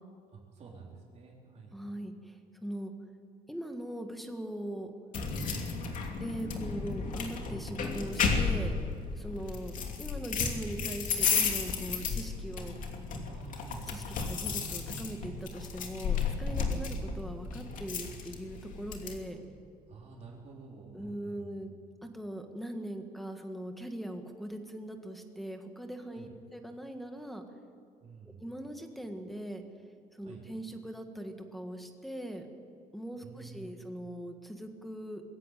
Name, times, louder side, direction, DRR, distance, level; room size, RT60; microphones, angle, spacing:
voice 1, 0.3-1.8 9.4-9.6 13.2-13.8 16.5-16.8 19.4-19.6 19.9-21.6 26.1-26.3 28.0-28.4 30.2-30.4 33.2-33.7, right 4 dB, 45° right, -2 dB, 4.0 m, -50 dB
voice 2, 1.7-2.9 3.5-4.9 6.2-8.7 9.2-12.8 13.9-19.4 20.9-21.7 22.0-27.4 28.4-29.6 30.1-32.5 32.9-35.2, right 1 dB, ahead, 5 dB, 1.7 m, -41 dB
sound 1, 5.1-19.2, left 5 dB, 55° left, 2.8 m, -33 dB
21.5 x 16.0 x 9.3 m, 2.3 s
cardioid pair, 165°, 16 cm